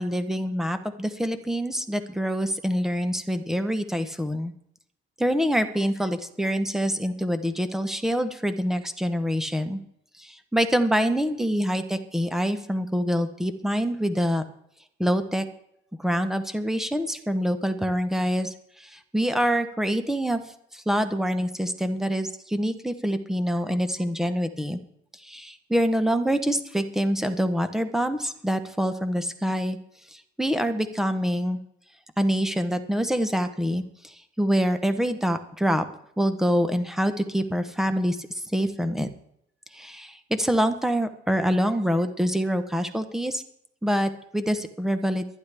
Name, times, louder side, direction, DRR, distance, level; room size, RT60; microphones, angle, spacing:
voice 1, 0.0-4.5 5.2-9.8 10.2-14.4 15.0-15.5 16.0-20.4 20.7-24.8 25.2-29.8 30.1-31.6 32.2-35.9 36.2-39.1 39.7-43.4 43.8-45.3, equal, ahead, 9 dB, 0.8 m, -25 dB
23.5 x 9.9 x 3.4 m, 0.74 s
cardioid pair, 160°, 20 cm